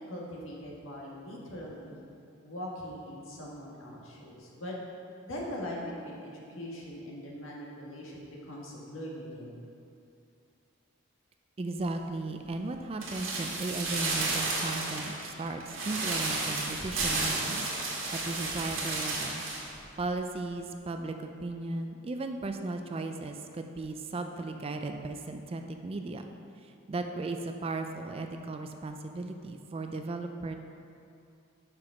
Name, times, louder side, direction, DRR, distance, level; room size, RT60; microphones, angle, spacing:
voice 1, 0.0-2.0 2.4-4.7 5.2-9.7, equal, 75° left, -3 dB, 1.5 m, -41 dB
voice 2, 11.6-17.7 18.1-19.4 20.0-26.3 26.6-30.6, right 2 dB, 30° right, 6 dB, 0.3 m, -36 dB
sound 1, 13.0-19.7 20.0-20.1, right 3 dB, 70° right, 1.5 m, -32 dB
6.0 x 4.9 x 5.8 m, 2.5 s
head